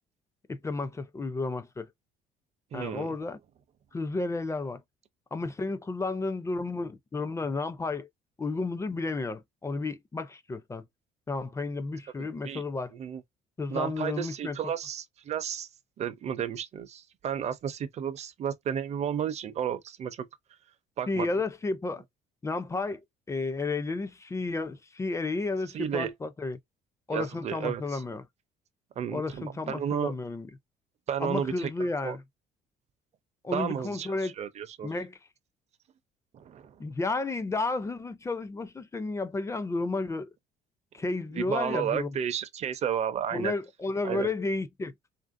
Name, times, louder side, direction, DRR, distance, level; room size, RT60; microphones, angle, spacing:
voice 1, 0.5-1.9 2.7-3.4 3.9-4.8 5.3-8.1 8.4-10.9 11.3-12.9 13.6-14.6 21.1-22.0 22.4-23.0 23.3-26.6 27.1-28.3 29.1-30.5 31.2-32.2 33.4-34.3 34.8-35.2 36.8-40.3 40.9-42.2 43.3-44.9, left 3 dB, 15° left, 0.4 m, -32 dB
voice 2, 2.7-3.2 12.2-12.6 12.9-13.2 13.7-15.7 16.0-20.3 21.0-21.3 25.7-26.1 27.1-28.0 29.0-30.1 31.1-31.7 32.0-32.2 33.5-34.9 36.3-36.8 41.3-43.5 44.0-44.3, right 8 dB, 40° right, 0.5 m, -32 dB
3.1 x 2.6 x 2.5 m
cardioid pair, 110°, 17 cm